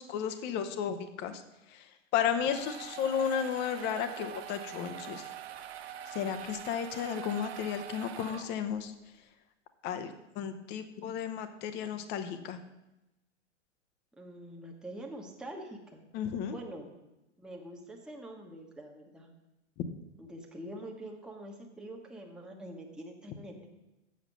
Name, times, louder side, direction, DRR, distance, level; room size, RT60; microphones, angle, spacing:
voice 1, 0.0-1.4 1.7-1.8 2.1-5.2 6.1-8.9 9.8-12.6 16.1-16.5, left 8 dB, 30° left, 9 dB, 0.9 m, -33 dB
sound 1, 2.2-8.9, right 10 dB, 60° right, 0.8 m, -44 dB
voice 2, 14.2-16.0 16.5-16.9 17.4-19.3 20.2-23.7, right 1 dB, ahead, 0 dB, 1.2 m, -45 dB
7.4 x 7.1 x 6.9 m, 0.96 s
figure-of-eight pair, 100°, 36 cm